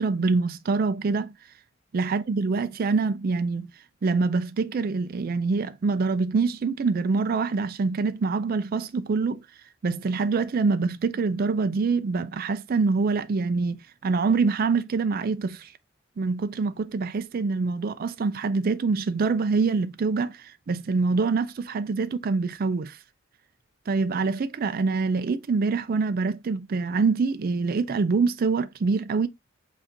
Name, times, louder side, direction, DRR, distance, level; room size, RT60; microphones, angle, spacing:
voice 1, 0.0-1.3 1.9-3.7 4.0-9.5 9.8-15.7 16.2-23.0 23.9-29.3, right 4 dB, 45° right, 0.4 m, -25 dB
7.3 x 2.6 x 2.8 m
head